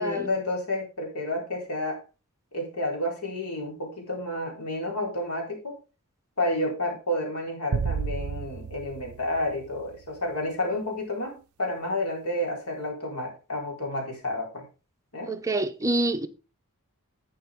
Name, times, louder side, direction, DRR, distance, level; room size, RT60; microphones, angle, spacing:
voice 1, 0.0-2.0 2.5-5.8 6.4-14.6 15.1-15.3, left 1 dB, 80° left, 4.4 m, -30 dB
sound 1, 7.7-10.2, right 5 dB, 70° right, 0.4 m, -32 dB
voice 2, 15.3-16.3, right 2 dB, 15° right, 0.8 m, -27 dB
11.5 x 8.5 x 3.7 m
head